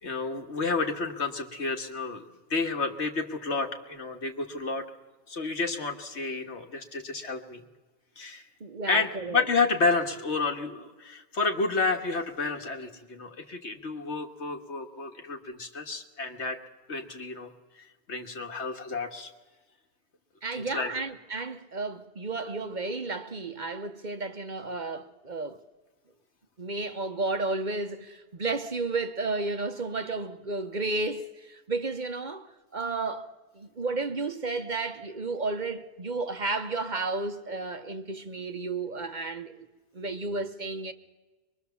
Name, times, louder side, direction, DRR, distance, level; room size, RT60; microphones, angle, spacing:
voice 1, 0.0-2.3 2.5-4.9 5.3-7.7 8.2-8.4 8.9-16.6 16.9-17.5 17.8-19.3 20.5-20.9, left 4 dB, 75° left, 2.0 m, -30 dB
voice 2, 8.6-9.4 20.4-25.6 26.6-32.5 32.7-33.3 33.5-39.7 39.9-40.9, right 3 dB, 45° right, 1.1 m, -32 dB
23.5 x 22.0 x 7.1 m
omnidirectional pair, 1.2 m